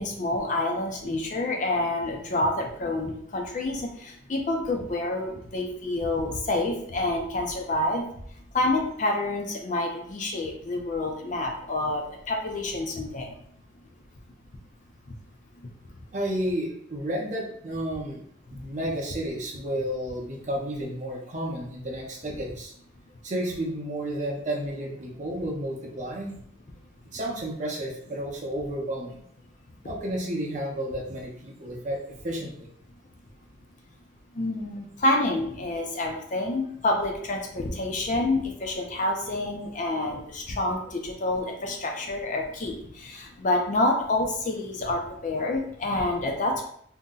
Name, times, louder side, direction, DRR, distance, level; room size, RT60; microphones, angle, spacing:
voice 1, 0.0-3.9 4.3-8.1 8.5-13.3 34.4-46.6, left 2 dB, 40° left, 1 dB, 0.4 m, -28 dB
voice 2, 16.1-18.2 18.5-22.7 23.2-26.3 27.1-29.2 29.8-32.0 32.2-32.7, right 1 dB, 40° right, -1 dB, 0.6 m, -31 dB
2.7 x 2.1 x 3.6 m, 0.66 s
head